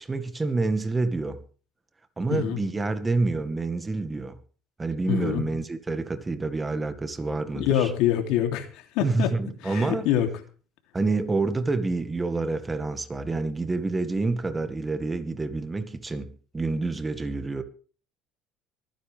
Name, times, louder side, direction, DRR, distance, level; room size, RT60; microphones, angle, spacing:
voice 1, 0.0-1.4 2.2-4.4 4.8-7.9 9.0-10.1 10.9-17.6, right 3 dB, 15° right, 1.9 m, -28 dB
voice 2, 5.1-5.4 7.5-9.3 9.6-10.3, left 11 dB, 75° left, 3.1 m, -25 dB
24.5 x 10.0 x 3.5 m
cardioid pair, 115°, 0 cm